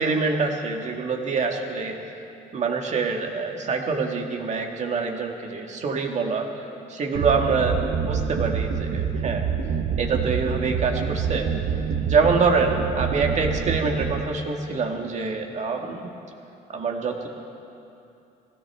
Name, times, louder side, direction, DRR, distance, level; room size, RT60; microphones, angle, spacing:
voice 1, 0.0-2.0 2.5-6.5 6.9-9.5 10.0-11.5 12.1-16.1 16.7-17.3, right 4 dB, 45° right, 2 dB, 1.8 m, -25 dB
sound 1, 7.1-14.2, right 7 dB, 70° right, 0.8 m, -27 dB
21.5 x 16.5 x 3.6 m, 2.8 s
cardioid pair, 110°, 17 cm